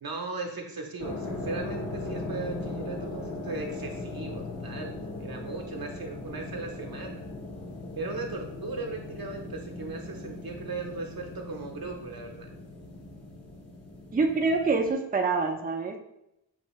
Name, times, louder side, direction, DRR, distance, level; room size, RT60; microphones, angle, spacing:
voice 1, 0.0-7.3 7.9-12.5, right 3 dB, 55° right, 2 dB, 0.8 m, -37 dB
sound 1, 1.0-14.9, left 2 dB, 35° left, 0.9 m, -39 dB
voice 2, 14.1-16.0, right 4 dB, 20° right, 2 dB, 0.4 m, -26 dB
5.6 x 2.6 x 3.0 m, 0.84 s
cardioid pair, 50°, 42 cm